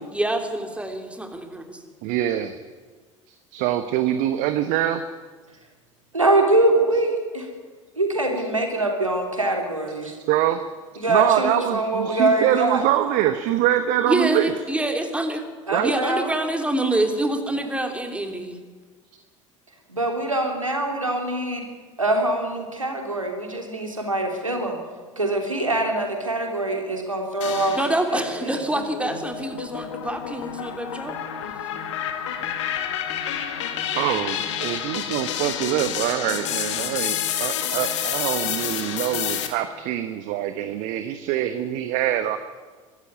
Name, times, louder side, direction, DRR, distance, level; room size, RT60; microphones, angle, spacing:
voice 1, 0.1-1.8 14.1-15.4 15.8-18.6 27.7-31.2, right 1 dB, 5° right, 5 dB, 3.3 m, -26 dB
voice 2, 2.0-2.5 3.5-5.0 10.3-10.6 11.1-14.5 15.7-15.9 33.9-42.4, right 12 dB, 55° right, 10 dB, 1.2 m, -24 dB
voice 3, 6.1-7.5 8.0-10.1 11.0-12.8 15.7-16.3 19.9-21.6 22.0-24.8 25.2-27.8 28.1-28.6, right 2 dB, 85° right, 2 dB, 3.3 m, -23 dB
sound 1, 27.4-28.3 28.7-39.5, left 9 dB, 65° left, 2.2 m, -29 dB
24.0 x 14.0 x 9.6 m, 1.4 s
figure-of-eight pair, 65°, 16 cm